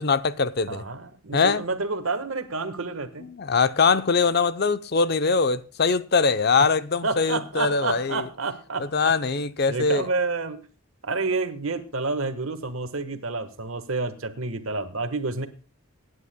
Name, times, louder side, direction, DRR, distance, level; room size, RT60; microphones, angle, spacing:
voice 1, 0.0-0.8 1.3-1.6 3.3-8.2 8.8-10.0, left 4 dB, 50° left, 0.6 m, -22 dB
voice 2, 0.7-3.3 7.0-9.1 9.7-10.6 11.0-15.5, right 3 dB, 75° right, 1.4 m, -29 dB
24.5 x 9.7 x 2.2 m
head